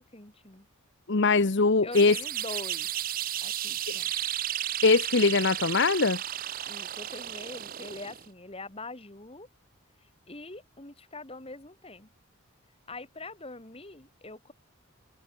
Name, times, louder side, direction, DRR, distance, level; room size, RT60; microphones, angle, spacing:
voice 1, 0.1-0.7 1.8-2.9 3.4-4.2 6.6-9.5 10.0-12.1 12.9-14.5, left 2 dB, 25° left, 2.3 m, -43 dB
voice 2, 1.1-2.1 4.8-6.2, left 3 dB, 55° left, 0.9 m, -22 dB
sound 1, 1.9-8.3, right 11 dB, 40° right, 0.6 m, -33 dB
head